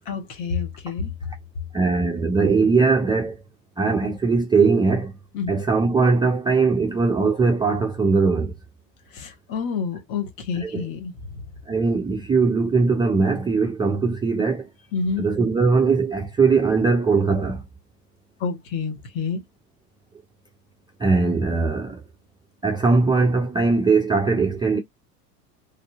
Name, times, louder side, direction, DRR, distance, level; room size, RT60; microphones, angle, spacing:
voice 1, 0.1-1.1 5.3-5.5 9.1-11.4 14.9-15.3 18.4-19.4, left 5 dB, 55° left, 1.4 m, -28 dB
voice 2, 1.7-3.4 3.8-5.1 5.5-8.5 10.6-10.9 11.7-14.7 15.2-17.6 21.0-22.0 22.6-24.8, right 4 dB, 10° right, 0.3 m, -20 dB
3.3 x 2.7 x 2.3 m
hypercardioid pair, 80°, 47 cm